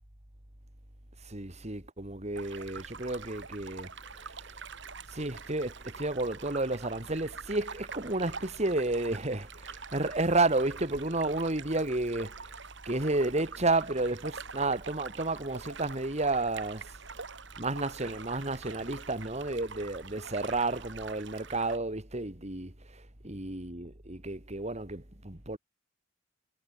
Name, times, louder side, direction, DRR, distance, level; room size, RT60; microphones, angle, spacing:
voice 1, 1.2-4.5 5.1-12.5 12.8-17.0 17.6-25.6, right 2 dB, 35° right, 3.0 m, -31 dB
sound 1, 2.3-21.8, right 5 dB, 65° right, 4.1 m, -45 dB
head